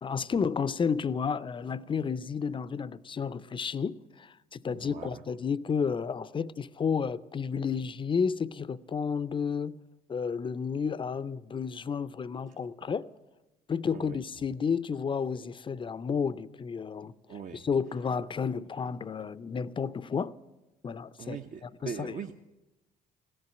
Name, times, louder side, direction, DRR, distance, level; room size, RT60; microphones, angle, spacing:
voice 1, 0.0-9.8 10.1-13.1 13.7-20.3 20.8-21.4 21.8-22.1, left 6 dB, 30° left, 0.5 m, -31 dB
voice 2, 4.7-5.2 12.5-12.6 13.9-14.2 17.3-17.7 21.2-22.4, right 6 dB, 45° right, 0.8 m, -41 dB
15.5 x 11.0 x 7.6 m
supercardioid pair, 70°, 18 cm